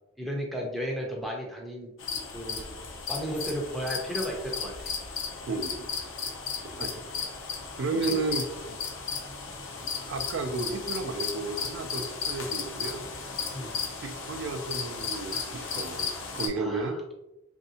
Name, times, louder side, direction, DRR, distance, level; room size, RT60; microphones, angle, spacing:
voice 1, 0.2-1.9 2.3-2.6 3.1-4.9 8.1-8.2 13.5-13.7 16.5-17.0, equal, ahead, -1 dB, 0.5 m, -34 dB
sound 1, 2.0-16.5, left 5 dB, 65° left, 0.5 m, -35 dB
voice 2, 5.5-5.9 6.6-7.0 7.7-8.4 10.1-13.1 14.0-17.0, right 3 dB, 60° right, 5 dB, 0.3 m, -33 dB
3.1 x 2.6 x 2.7 m, 0.90 s
head